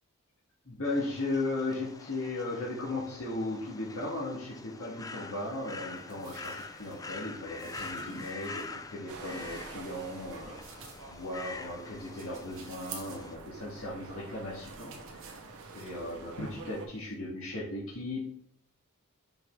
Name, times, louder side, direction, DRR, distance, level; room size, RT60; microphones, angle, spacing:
voice 1, 0.7-15.2 15.7-18.3, left 2 dB, 65° left, -8 dB, 2.0 m, -37 dB
sound 1, 0.8-13.4, left 3 dB, 15° left, 0.4 m, -45 dB
sound 2, 5.4-17.2, right 5 dB, 60° right, 1.3 m, -53 dB
sound 3, 9.1-16.9, right 3 dB, 80° right, 1.1 m, -48 dB
5.9 x 5.4 x 3.7 m, 0.70 s
head